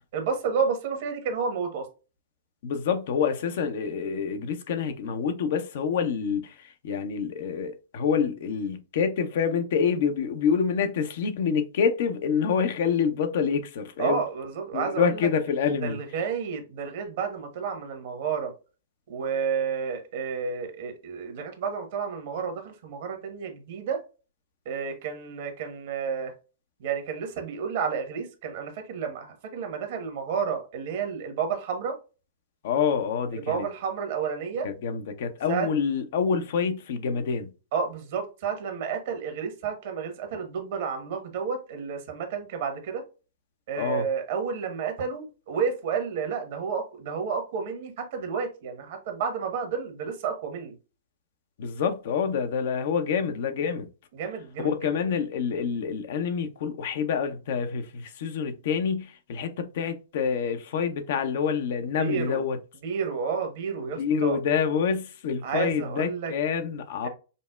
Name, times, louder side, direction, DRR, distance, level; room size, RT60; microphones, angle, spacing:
voice 1, 0.1-1.9 14.0-15.3 15.8-18.5 19.1-24.0 24.6-26.3 26.8-32.0 33.3-34.7 35.5-35.7 37.7-43.0 43.7-50.7 54.1-54.8 62.0-62.4 62.8-64.4 65.4-66.3 67.0-67.1, right 6 dB, 55° right, 1.1 m, -31 dB
voice 2, 2.6-14.2 14.7-16.0 32.6-33.6 34.6-37.5 43.7-44.1 51.6-53.9 54.6-62.6 64.0-67.1, left 6 dB, 60° left, 0.6 m, -27 dB
5.2 x 2.1 x 2.3 m
hypercardioid pair, 115°, 0 cm